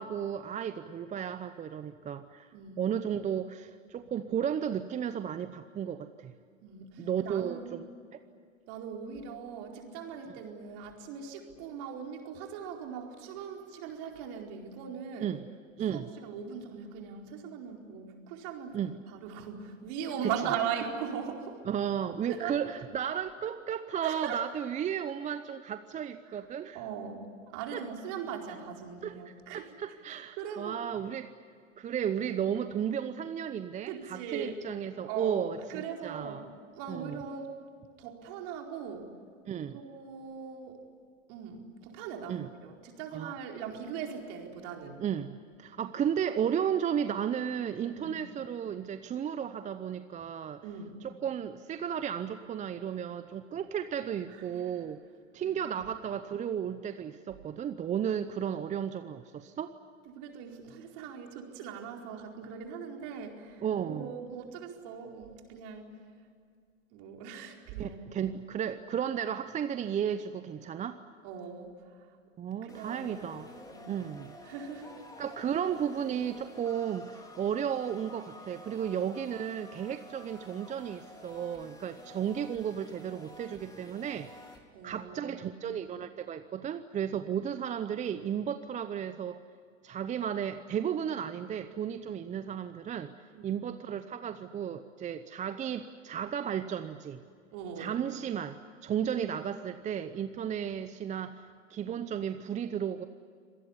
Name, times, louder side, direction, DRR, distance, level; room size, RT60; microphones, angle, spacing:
voice 1, 0.0-6.3 7.0-7.8 8.1-8.2 15.2-15.4 15.8-16.1 18.7-18.9 20.2-20.3 21.7-26.8 27.7-27.8 29.0-31.3 31.8-36.4 36.9-37.2 39.4-39.8 42.3-42.5 43.1-43.3 45.0-50.6 51.0-55.0 55.3-59.7 63.6-64.1 67.8-71.0 72.4-73.5 73.9-74.4 75.2-84.3 84.8-89.4 89.8-93.1 93.4-97.2 97.8-103.1, right 8 dB, 20° right, 11 dB, 0.8 m, -34 dB
voice 2, 2.5-2.9 6.6-7.7 8.7-15.3 15.9-21.6 22.3-22.6 24.0-24.4 26.3-26.4 26.7-29.7 30.1-30.8 33.9-34.6 35.1-36.4 36.7-37.6 38.0-39.1 39.7-40.8 41.3-45.0 47.9-48.2 50.6-51.0 54.3-54.8 55.4-55.8 60.1-66.0 66.9-68.0 71.2-72.2 72.6-73.2 73.6-73.9 74.4-75.0 78.8-79.0 84.7-85.9 93.3-93.6 97.5-98.1, right 7 dB, 50° right, 2 dB, 4.5 m, -40 dB
sound 1, 72.7-84.6, left 1 dB, 10° left, 3.6 m, -50 dB
26.0 x 19.0 x 9.9 m, 2.2 s
hypercardioid pair, 110°, 38 cm